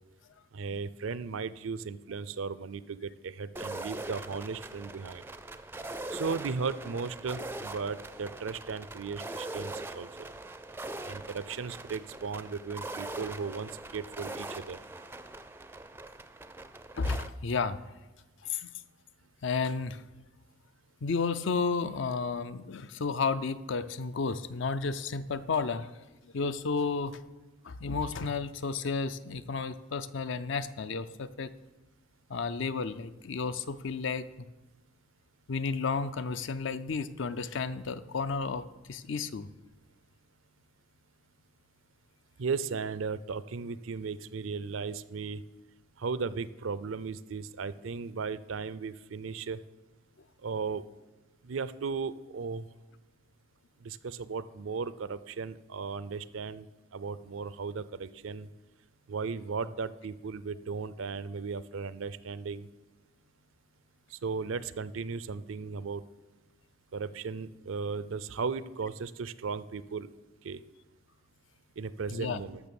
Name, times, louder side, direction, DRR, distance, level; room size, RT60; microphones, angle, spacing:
voice 1, 0.5-5.2 6.1-10.3 11.0-14.8 42.4-45.4 46.0-49.6 50.4-50.8 51.4-52.7 53.8-56.7 56.9-58.5 59.1-62.7 64.1-66.0 66.9-70.1 70.4-70.6 71.8-72.6, right 5 dB, 75° right, 16 dB, 0.5 m, -36 dB
sound 1, 3.6-17.3, right 2 dB, 10° right, 0.4 m, -42 dB
voice 2, 17.0-17.8 18.4-18.7 19.4-20.0 21.0-26.0 26.3-27.2 27.6-31.5 32.3-34.3 35.5-39.5 72.1-72.4, left 4 dB, 65° left, 14 dB, 0.5 m, -32 dB
12.5 x 6.4 x 7.0 m, 1.1 s
head